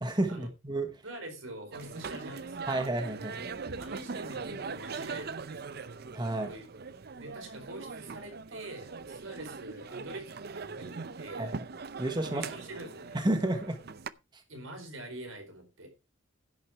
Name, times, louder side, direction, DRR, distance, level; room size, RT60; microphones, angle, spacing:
voice 1, 0.0-0.9 2.7-3.5 6.1-6.5 11.4-11.5 12.0-12.5 13.1-13.8 14.3-14.4, right 1 dB, 20° right, 1.3 m, -31 dB
voice 2, 1.0-2.8 3.7-5.4 6.5-6.7 7.2-11.5 12.3-13.3 14.5-15.9, right 1 dB, 75° right, 4.5 m, -45 dB
sound 1, 1.7-14.1, right 4 dB, 50° right, 0.6 m, -41 dB
11.0 x 9.6 x 4.5 m
head